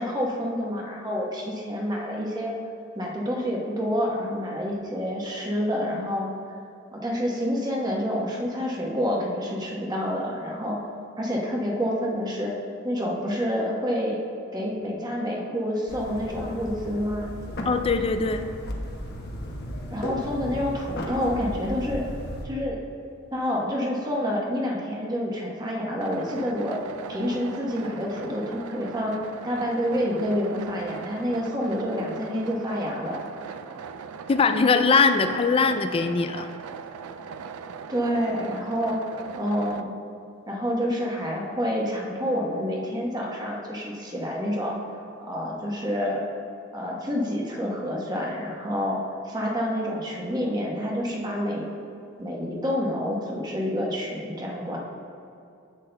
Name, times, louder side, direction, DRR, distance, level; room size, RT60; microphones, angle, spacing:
voice 1, 0.0-2.5 2.9-6.3 6.9-10.8 11.2-12.5 12.8-14.2 14.5-17.3 19.9-22.0 22.4-22.8 23.3-26.8 27.1-29.2 29.4-33.2 37.9-39.0 39.3-39.9 40.5-44.7 45.2-46.2 46.7-49.0 49.2-51.7 52.2-54.8, equal, 20° right, -2 dB, 1.1 m, -28 dB
sound 1, 15.9-22.5, equal, 50° left, 1.0 m, -35 dB
voice 2, 17.7-18.5 34.3-36.5, left 4 dB, 25° left, 8 dB, 0.3 m, -21 dB
sound 2, 26.0-39.8, right 6 dB, 85° right, 0.4 m, -40 dB
10.5 x 8.3 x 2.2 m, 2.6 s
head